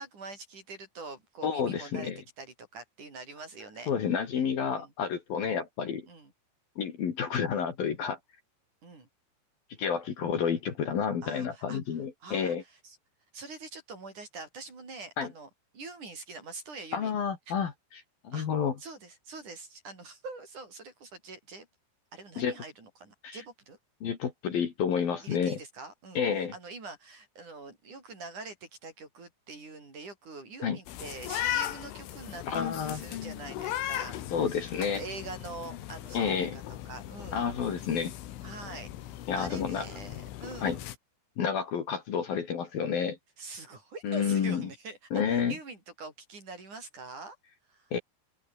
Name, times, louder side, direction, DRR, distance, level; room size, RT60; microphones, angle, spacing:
voice 1, 0.0-2.1 2.4-3.9 4.7-4.9 6.1-6.3 8.8-9.1 11.2-11.8 12.2-13.0 13.3-17.1 17.5-17.6 18.3-18.5 18.8-21.7 22.1-23.8 25.2-34.6 34.9-37.7 38.4-40.8 43.4-47.4 47.7-47.9, right 3 dB, 40° right, 7.7 m, -44 dB
voice 2, 1.4-2.2 3.9-6.0 6.8-8.2 9.8-12.6 15.2-15.3 16.9-18.7 22.4-22.6 23.2-23.4 24.0-25.6 26.2-26.5 30.6-30.8 32.5-33.0 34.3-35.0 36.1-36.6 37.3-38.1 39.3-39.9 40.6-40.8 41.4-43.2 44.0-44.7 45.1-45.5 47.9-48.0, left 7 dB, 55° left, 4.1 m, -30 dB
sound 1, 30.9-41.0, left 12 dB, 85° left, 4.4 m, -38 dB
open air
omnidirectional pair, 5.4 m